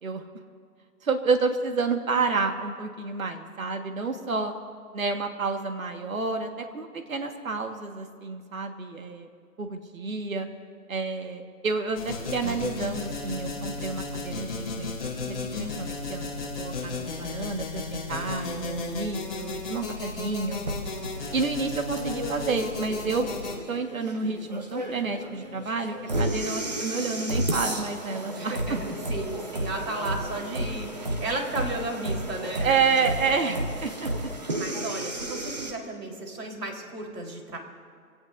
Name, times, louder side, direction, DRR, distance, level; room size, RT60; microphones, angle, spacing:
voice 1, 1.0-4.5 4.9-9.3 9.6-10.5 10.9-14.9 15.3-20.6 21.3-23.3 23.7-28.8 32.6-34.3, right 4 dB, 55° right, 5 dB, 1.8 m, -29 dB
sound 1, 11.9-23.6, left 3 dB, 35° left, 4.2 m, -34 dB
sound 2, 20.7-35.7, right 1 dB, 25° right, 1.0 m, -33 dB
voice 2, 28.4-32.7 34.6-37.6, right 2 dB, 75° right, 1 dB, 4.3 m, -34 dB
26.0 x 17.0 x 2.7 m, 2.1 s
hypercardioid pair, 175°, 47 cm